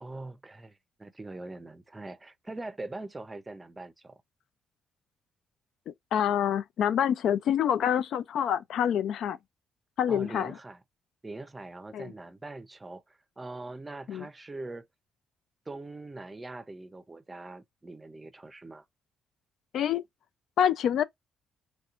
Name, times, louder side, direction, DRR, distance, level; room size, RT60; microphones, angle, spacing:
voice 1, 0.0-4.2 10.1-10.8 11.2-14.9 15.7-18.8, right 2 dB, 20° right, 0.5 m, -42 dB
voice 2, 5.9-9.4 10.0-10.5 11.9-12.1 14.1-14.3 19.7-20.0 20.6-21.0, left 9 dB, 70° left, 0.3 m, -26 dB
3.1 x 2.9 x 2.4 m
cardioid pair, 90°, 0 cm